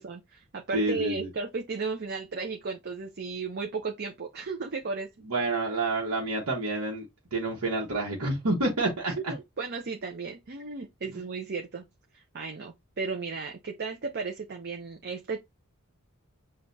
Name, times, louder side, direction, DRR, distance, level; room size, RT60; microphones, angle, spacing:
voice 1, 0.0-5.1 9.1-11.8 12.1-15.4, right 4 dB, 50° right, 0.6 m, -35 dB
voice 2, 0.7-1.3 5.2-7.0 7.3-9.3, right 2 dB, 80° right, 1.2 m, -28 dB
6.3 x 2.5 x 2.7 m
head